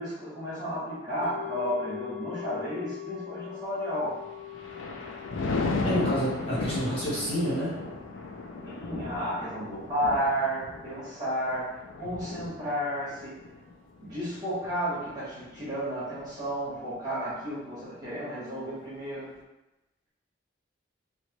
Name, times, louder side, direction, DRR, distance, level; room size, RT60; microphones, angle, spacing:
voice 1, 0.0-4.2 8.6-13.4 14.0-19.3, equal, 20° right, -11 dB, 1.3 m, -32 dB
sound 1, 1.2-11.5 11.8-11.9, left 12 dB, 55° right, 0.6 m, -43 dB
Thunder, 4.2-15.7 16.2-16.5, left 3 dB, 75° left, 0.4 m, -35 dB
voice 2, 5.8-7.7, equal, 30° left, -10 dB, 0.8 m, -29 dB
3.2 x 3.0 x 3.0 m, 1.0 s
head